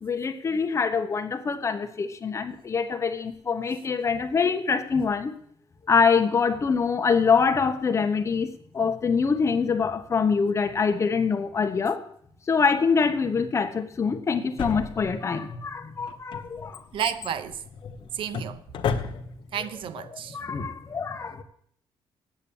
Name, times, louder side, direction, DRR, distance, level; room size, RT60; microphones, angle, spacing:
voice 1, 0.0-5.3 5.9-8.5 8.7-12.0 12.5-16.8 20.1-21.4, left 5 dB, 30° left, 1.1 m, -24 dB
Drawer open or close, 14.6-15.4 16.1-19.6 19.8-19.9, left 6 dB, 70° left, 1.1 m, -33 dB
voice 2, 16.9-17.6 18.1-18.6 19.5-20.4, right 9 dB, 70° right, 0.7 m, -31 dB
8.8 x 8.4 x 8.7 m
cardioid pair, 145°, 9 cm